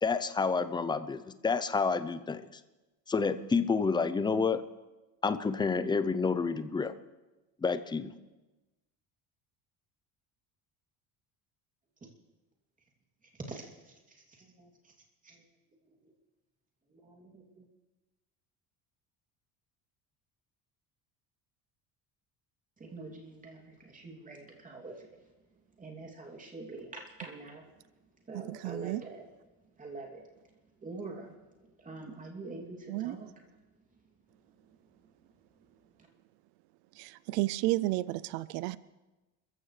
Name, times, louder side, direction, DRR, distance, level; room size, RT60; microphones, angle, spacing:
voice 1, 0.0-2.5 3.1-4.6 5.2-6.9 7.6-8.1, left 4 dB, 10° left, 12 dB, 0.5 m, -29 dB
voice 2, 13.5-14.9 15.2-15.4 15.9-16.0 16.9-17.7 22.8-25.2 25.8-27.6 28.3-29.2 29.8-30.2 30.8-33.3 36.0-36.1, right 3 dB, 20° right, 0 dB, 2.8 m, -45 dB
voice 3, 28.3-29.0 32.9-33.1 37.0-38.8, right 18 dB, 85° right, 18 dB, 0.5 m, -32 dB
29.5 x 15.0 x 3.3 m, 1.1 s
cardioid pair, 150°, 39 cm